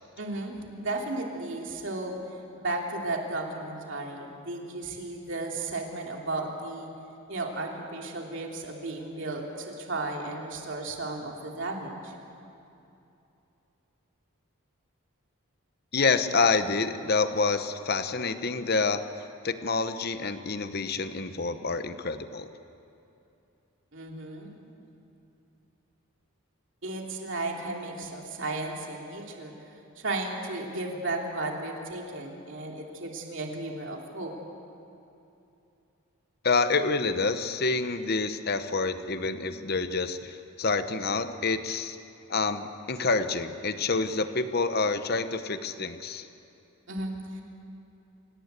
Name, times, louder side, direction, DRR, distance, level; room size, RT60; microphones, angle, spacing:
voice 1, 0.2-2.2 2.5-6.9 7.3-12.1 23.9-24.5 26.8-29.5 30.0-34.3 46.9-47.4, right 2 dB, 55° right, 0 dB, 3.0 m, -34 dB
voice 2, 15.9-19.1 19.4-22.5 36.4-42.0 42.3-46.3, left 4 dB, 45° left, 10 dB, 1.0 m, -27 dB
27.0 x 18.0 x 8.2 m, 2.8 s
head